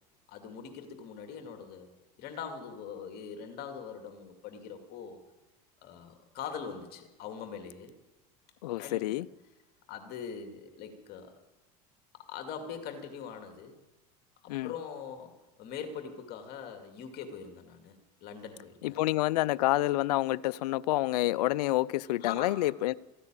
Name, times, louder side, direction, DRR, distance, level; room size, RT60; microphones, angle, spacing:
voice 1, 0.3-1.9 2.2-5.2 5.8-7.9 8.8-9.2 9.9-11.3 12.1-13.8 14.4-15.3 15.6-18.0 18.2-19.0 22.2-22.6, left 7 dB, 50° left, 2.3 m, -42 dB
voice 2, 8.6-9.3 14.5-14.7 18.8-22.9, left 17 dB, 80° left, 0.5 m, -28 dB
14.5 x 9.9 x 9.0 m
supercardioid pair, 105°, 20 cm